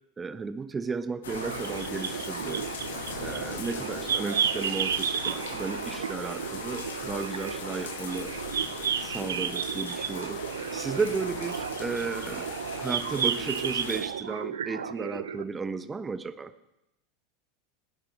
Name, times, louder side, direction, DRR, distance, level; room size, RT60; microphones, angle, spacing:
voice 1, 0.2-2.7 3.2-8.3 9.0-10.4 10.7-16.5, right 4 dB, 20° right, 11 dB, 1.2 m, -34 dB
sound 1, 1.2-14.0, left 5 dB, 80° left, 2.7 m, -39 dB
sound 2, 1.3-15.4, right 8 dB, 80° right, 0.6 m, -33 dB
18.5 x 10.5 x 6.3 m, 0.92 s
hypercardioid pair, 90°, 0 cm